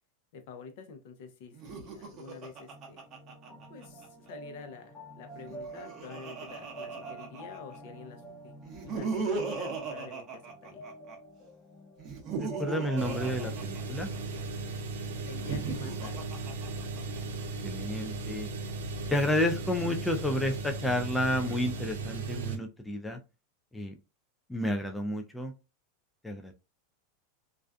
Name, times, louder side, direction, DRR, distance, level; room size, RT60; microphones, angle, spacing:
voice 1, 0.3-3.1 3.7-8.5 8.8-10.8 15.2-16.3, left 5 dB, 65° left, 7 dB, 0.6 m, -48 dB
Laughter, 1.5-4.1 5.4-7.8 8.6-11.2 12.0-14.4 15.3-17.2, right 4 dB, 35° right, 0.7 m, -37 dB
sound 1, 2.7-13.5, right 2 dB, 25° left, 0.7 m, -48 dB
voice 2, 12.4-14.1 17.6-18.5 19.1-23.2 23.7-23.9 24.5-25.5 26.2-26.5, left 1 dB, 5° left, 3 dB, 0.3 m, -31 dB
sound 2, 13.0-22.6, right 3 dB, 90° right, 0.5 m, -37 dB
2.4 x 2.2 x 2.4 m, 0.28 s
supercardioid pair, 135°, 0 cm